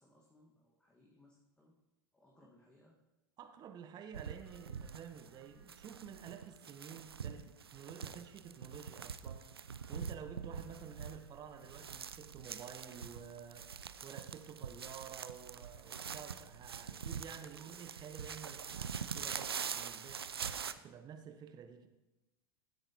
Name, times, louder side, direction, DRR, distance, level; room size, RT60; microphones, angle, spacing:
voice 1, 0.0-1.7 2.1-3.0, left 1 dB, 10° left, -2 dB, 1.6 m, -66 dB
voice 2, 3.4-9.5 9.9-20.2 20.7-21.9, right 8 dB, 35° right, 8 dB, 1.1 m, -51 dB
sound 1, 4.1-20.7, right 7 dB, 85° right, 0.5 m, -44 dB
16.0 x 8.7 x 2.9 m, 1.0 s
figure-of-eight pair, 90°, 12 cm